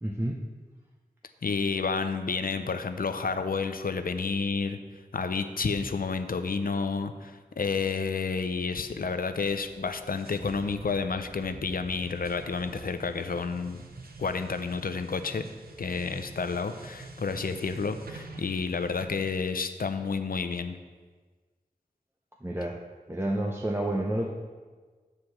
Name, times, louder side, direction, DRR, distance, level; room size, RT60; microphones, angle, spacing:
voice 1, 0.0-0.4 22.4-22.8 23.1-24.3, right 1 dB, 15° right, -1 dB, 0.7 m, -29 dB
voice 2, 1.4-4.8 5.1-13.8 14.2-15.4 15.8-20.8, left 4 dB, 70° left, 9 dB, 0.5 m, -30 dB
sound 1, 9.4-19.1, right 3 dB, 90° right, 0.7 m, -47 dB
7.8 x 4.5 x 6.4 m, 1.4 s
wide cardioid pair, 40°, 15 cm